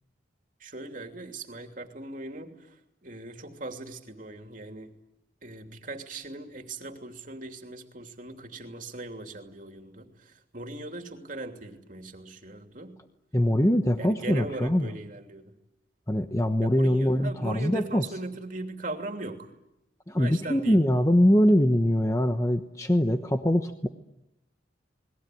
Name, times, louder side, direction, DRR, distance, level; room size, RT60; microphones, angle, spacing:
voice 1, 0.6-2.8 3.0-4.9 5.4-13.0 14.0-15.5 16.6-19.5 20.2-20.8, right 2 dB, 45° right, 5 dB, 2.9 m, -39 dB
voice 2, 13.3-14.9 16.1-18.0 20.1-23.9, equal, 15° left, 6 dB, 1.1 m, -23 dB
29.5 x 21.0 x 9.3 m, 0.90 s
head